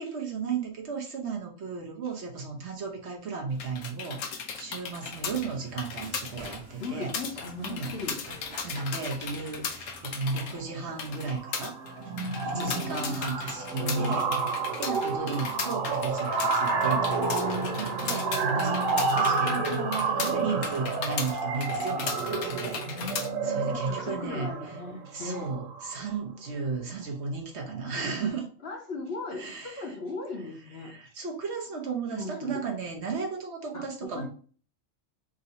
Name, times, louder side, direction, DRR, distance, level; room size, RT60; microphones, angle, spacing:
voice 1, 0.0-7.1 7.6-7.9 8.6-11.8 12.4-23.1 23.4-24.5 25.1-28.5 29.3-29.8 30.8-34.3, right 5 dB, 60° right, 0 dB, 1.1 m, -34 dB
sound 1, 3.5-23.3, left 6 dB, 85° left, 1.1 m, -37 dB
sound 2, 5.1-10.1, right 1 dB, 25° right, 0.9 m, -49 dB
voice 2, 6.8-8.2 12.5-12.8 22.9-25.5 28.6-30.9 32.1-32.6 33.7-34.3, left 3 dB, 55° left, 2 dB, 1.1 m, -37 dB
sound 3, 10.1-10.4 10.7-11.0 11.3-26.2, right 4 dB, 90° right, 1.2 m, -30 dB
3.8 x 2.6 x 4.1 m, 0.43 s
omnidirectional pair, 1.3 m